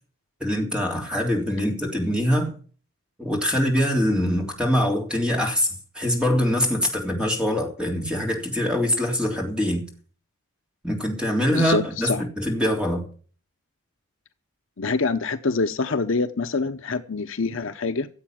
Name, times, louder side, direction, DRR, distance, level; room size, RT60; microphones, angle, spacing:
voice 1, 0.4-2.5 3.2-9.8 10.8-13.0, equal, 5° right, 3.4 m, -23 dB
voice 2, 11.5-12.2 14.8-18.1, left 4 dB, 60° left, 0.8 m, -25 dB
15.5 x 7.9 x 7.4 m
head